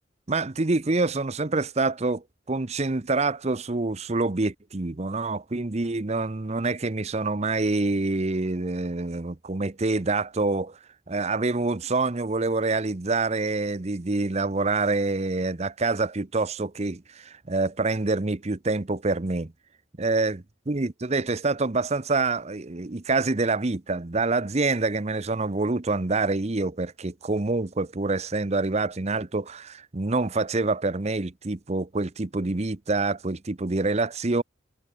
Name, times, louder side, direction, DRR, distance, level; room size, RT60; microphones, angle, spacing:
voice 1, 0.3-10.8 11.1-19.5 20.0-34.4, right 3 dB, 30° right, 0.8 m, -26 dB
head